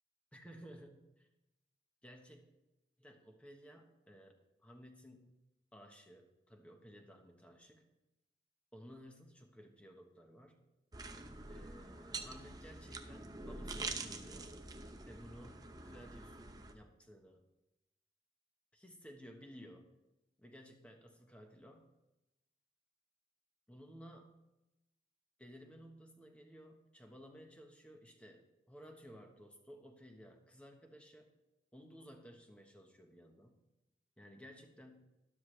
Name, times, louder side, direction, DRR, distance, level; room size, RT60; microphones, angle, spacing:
voice 1, 0.3-1.3 2.0-2.4 3.0-4.4 4.6-5.4 5.7-7.8 8.7-10.6 11.5-14.6 15.1-17.4 18.7-19.9 20.4-21.9 23.7-24.4 25.4-31.3 31.7-33.6 34.2-35.0, equal, 5° left, 3 dB, 1.2 m, -56 dB
sound 1, 10.9-16.7, right 3 dB, 20° right, 0.7 m, -46 dB
13.0 x 12.0 x 3.3 m, 0.95 s
head